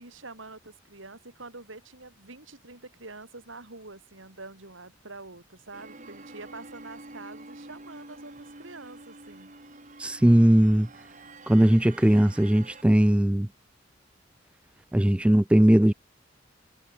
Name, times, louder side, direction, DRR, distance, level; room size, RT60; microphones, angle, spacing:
voice 1, 0.0-9.6, right 3 dB, 85° right, 5.6 m, -46 dB
sound 1, 5.7-12.8, right 2 dB, 40° right, 3.3 m, -47 dB
voice 2, 10.0-10.9 11.5-13.5 14.9-15.9, right 1 dB, 5° right, 0.3 m, -19 dB
head